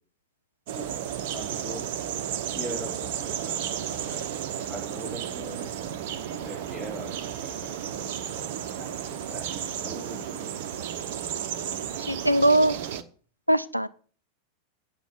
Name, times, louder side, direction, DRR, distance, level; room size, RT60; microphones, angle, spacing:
sound 1, 0.7-13.0, right 9 dB, 50° right, 0.9 m, -33 dB
voice 1, 1.3-1.8 2.5-4.3 4.7-5.7 6.3-8.1 8.8-10.5, equal, 10° left, -5 dB, 4.5 m, -41 dB
voice 2, 12.1-12.8 13.5-13.9, right 1 dB, 90° right, 14 dB, 0.6 m, -21 dB
9.2 x 6.7 x 8.1 m, 0.43 s
figure-of-eight pair, 90°, 0 cm